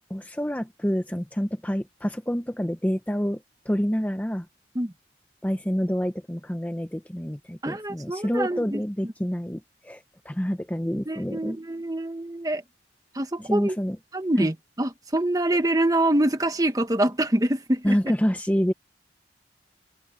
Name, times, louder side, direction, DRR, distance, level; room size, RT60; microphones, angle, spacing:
voice 1, 0.1-4.5 5.4-11.6 13.4-14.0 14.4-14.5 17.8-18.7, equal, 10° left, 0.8 m, -27 dB
voice 2, 7.6-9.1 11.1-12.6 13.1-13.8 14.1-18.0, right 1 dB, 20° right, 1.2 m, -25 dB
open air
head